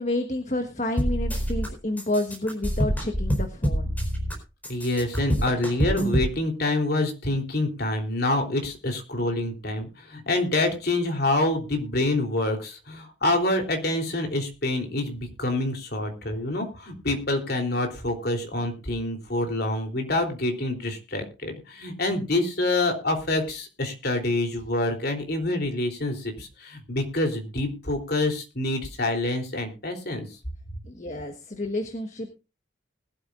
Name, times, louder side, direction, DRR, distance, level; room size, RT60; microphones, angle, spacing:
voice 1, 0.0-3.9 30.8-32.3, left 1 dB, 40° left, 6 dB, 1.4 m, -29 dB
sound 1, 1.0-1.7 2.0-4.3 4.6-6.3, equal, 10° left, 4.4 m, -26 dB
voice 2, 4.7-30.3, left 2 dB, 55° left, 3 dB, 3.4 m, -27 dB
20.5 x 12.5 x 2.5 m, 0.30 s
head